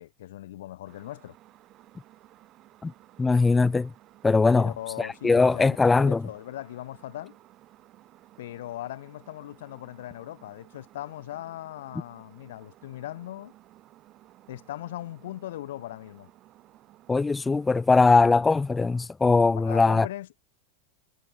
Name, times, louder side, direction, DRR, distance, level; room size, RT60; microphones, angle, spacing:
voice 1, 0.0-1.4 4.5-7.4 8.4-13.5 14.5-16.3 19.6-20.4, left 14 dB, 80° left, 1.2 m, -39 dB
sound 1, 0.9-19.1, right 15 dB, 45° right, 4.1 m, -56 dB
voice 2, 3.2-3.9 4.2-4.7 5.0-6.3 17.1-20.1, left 4 dB, 15° left, 0.4 m, -21 dB
hypercardioid pair, 110°, 0 cm